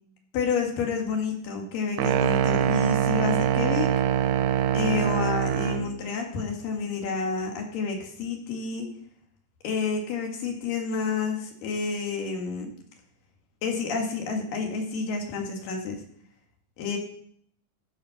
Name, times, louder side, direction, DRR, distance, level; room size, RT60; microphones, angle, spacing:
voice 1, 0.3-3.9 4.7-8.9 9.6-12.7 13.6-16.0 16.8-17.0, left 5 dB, 80° left, 2 dB, 3.4 m, -29 dB
sound 1, 2.0-5.9, right 9 dB, 90° right, 2.3 m, -24 dB
13.0 x 5.6 x 5.8 m, 0.64 s
omnidirectional pair, 3.9 m